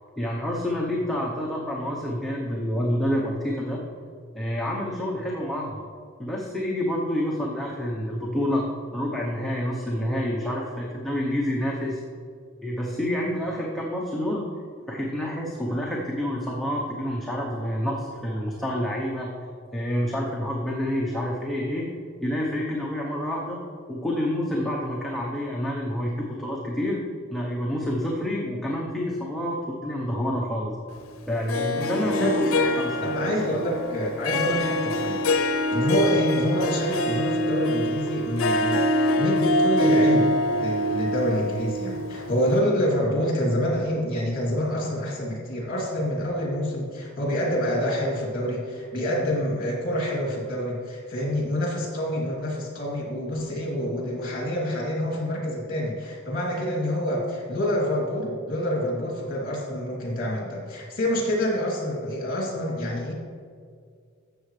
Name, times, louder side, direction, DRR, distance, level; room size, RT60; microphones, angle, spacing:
voice 1, 0.2-3.8 4.3-5.8 6.2-8.7 8.9-12.0 12.6-14.5 14.9-19.3 19.7-21.9 22.2-23.6 23.9-27.0 27.3-30.7 31.3-33.3, equal, ahead, -4 dB, 0.9 m, -28 dB
Harp, 31.5-42.6, left 1 dB, 80° left, 0.6 m, -24 dB
voice 2, 33.0-35.2 35.7-63.1, equal, 45° left, -2 dB, 2.7 m, -27 dB
12.5 x 7.7 x 3.3 m, 2.1 s
head